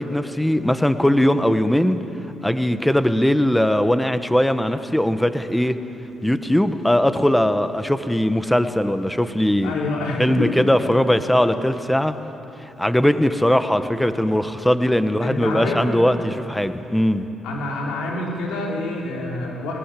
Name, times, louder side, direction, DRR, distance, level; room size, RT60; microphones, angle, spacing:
voice 1, 0.0-2.0 2.4-5.8 6.2-9.7 10.2-12.1 12.8-17.3, left 1 dB, 5° left, 10 dB, 1.3 m, -20 dB
voice 2, 9.6-10.5 15.2-15.8 17.4-19.8, left 2 dB, 85° left, -2 dB, 5.2 m, -27 dB
21.0 x 19.5 x 7.7 m, 2.9 s
cardioid pair, 80°, 0 cm